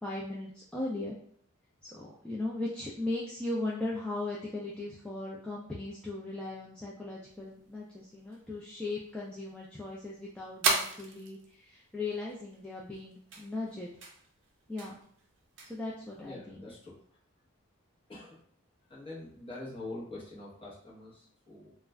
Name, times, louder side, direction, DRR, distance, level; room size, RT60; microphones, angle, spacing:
voice 1, 0.0-1.2 1.8-13.9 14.7-15.0 15.6-16.7, left 2 dB, 5° left, -6 dB, 0.3 m, -38 dB
sound 1, 7.3-16.3, right 3 dB, 60° right, 0.5 m, -39 dB
voice 2, 16.1-16.9 18.1-18.4 18.9-21.7, left 2 dB, 25° left, -6 dB, 0.9 m, -44 dB
2.4 x 2.1 x 3.4 m, 0.62 s
head